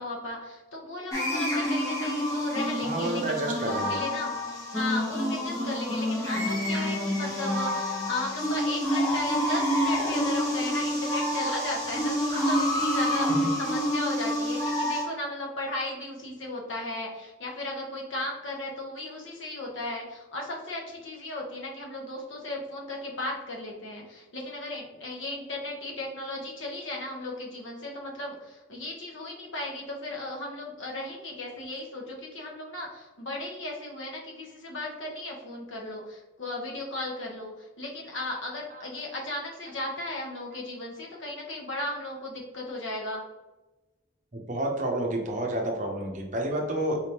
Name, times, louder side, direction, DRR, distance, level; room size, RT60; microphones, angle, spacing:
voice 1, 0.0-43.2, left 2 dB, 75° left, -1 dB, 1.0 m, -36 dB
sound 1, 1.1-15.0, equal, 20° left, 1.0 m, -28 dB
voice 2, 2.8-4.0 38.7-38.9 40.5-40.6 44.3-47.0, right 1 dB, 40° right, 1 dB, 0.7 m, -30 dB
4.1 x 3.5 x 2.9 m, 1.1 s
head